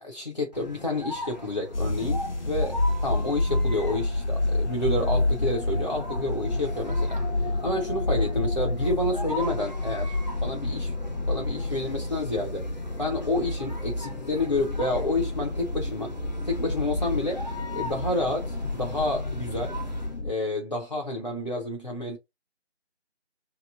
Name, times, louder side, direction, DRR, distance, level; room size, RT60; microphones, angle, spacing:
voice 1, 0.0-7.2 7.6-10.9 11.3-12.7 13.0-16.1 16.4-17.4 17.7-19.8 20.2-22.2, left 2 dB, 40° left, 0.6 m, -29 dB
sound 1, 0.5-20.2, left 1 dB, 40° right, 0.4 m, -41 dB
sound 2, 1.7-20.3, left 2 dB, 75° left, 0.8 m, -29 dB
3.0 x 3.0 x 2.3 m
figure-of-eight pair, 175°, 35 cm